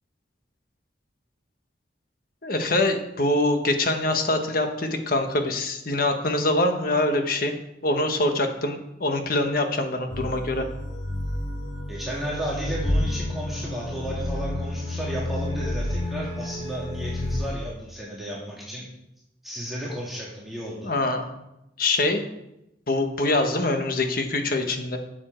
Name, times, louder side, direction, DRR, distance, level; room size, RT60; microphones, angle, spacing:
voice 1, 2.4-7.5 7.8-10.7 20.8-21.3 21.8-22.2 22.9-25.0, left 2 dB, 50° left, 5 dB, 1.3 m, -24 dB
sound 1, 10.1-17.4, left 1 dB, 80° left, 4.2 m, -30 dB
voice 2, 11.9-18.8 19.4-20.9, right 1 dB, ahead, -6 dB, 2.0 m, -33 dB
12.0 x 7.4 x 4.5 m, 0.86 s
head